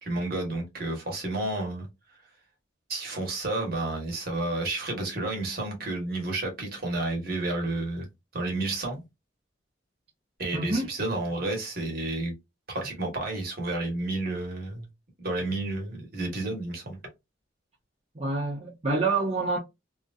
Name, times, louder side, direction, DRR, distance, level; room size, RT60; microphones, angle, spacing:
voice 1, 0.0-1.9 2.9-8.1 8.3-9.0 10.4-12.3 12.7-14.9 15.2-17.0, right 2 dB, 55° right, 1.3 m, -31 dB
voice 2, 10.5-10.9 18.1-19.6, right 3 dB, 35° right, 0.8 m, -27 dB
3.0 x 2.6 x 2.4 m
head